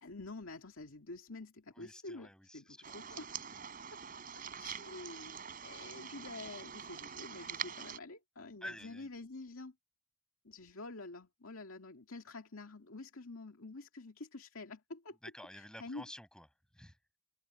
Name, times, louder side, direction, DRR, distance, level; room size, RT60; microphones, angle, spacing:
voice 1, 0.0-3.6 4.6-9.7 10.4-15.2 15.5-16.0, left 3 dB, 80° left, 2.2 m, -48 dB
voice 2, 1.7-3.1 3.5-4.0 8.6-9.1 15.2-16.5 16.7-17.0, left 1 dB, 5° left, 6.9 m, -51 dB
sound 1, 2.8-8.0, right 8 dB, 45° right, 3.6 m, -45 dB
head